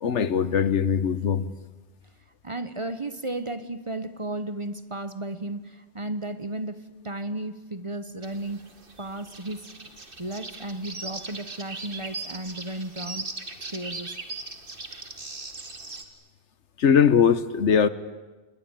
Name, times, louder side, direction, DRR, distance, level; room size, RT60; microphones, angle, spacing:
voice 1, 0.0-1.5 16.8-17.9, left 7 dB, 80° left, 15 dB, 1.3 m, -21 dB
voice 2, 2.4-8.6 9.0-9.7 10.2-13.2 13.7-14.2, right 1 dB, 30° right, 12 dB, 1.0 m, -34 dB
sound 1, 8.2-16.0, right 3 dB, 50° right, 2.3 m, -39 dB
28.5 x 20.5 x 9.0 m, 1.2 s
omnidirectional pair, 1.2 m